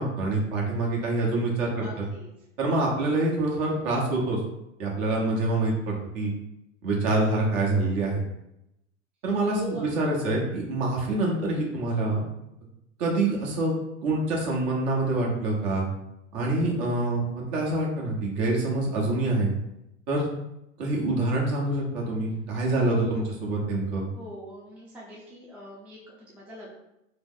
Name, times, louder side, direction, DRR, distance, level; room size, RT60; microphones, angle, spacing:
voice 1, 0.0-2.1 2.6-4.4 4.8-6.3 6.8-8.2 9.2-12.2 13.0-13.7 14.0-15.9 16.3-19.5 20.1-20.3 20.8-24.1, right 2 dB, 50° right, -2 dB, 1.2 m, -26 dB
voice 2, 1.8-2.3 2.9-3.1 9.4-9.8 22.6-23.3 24.1-26.8, equal, 5° right, -5 dB, 0.4 m, -42 dB
3.3 x 2.0 x 3.8 m, 0.86 s
hypercardioid pair, 115°, 39 cm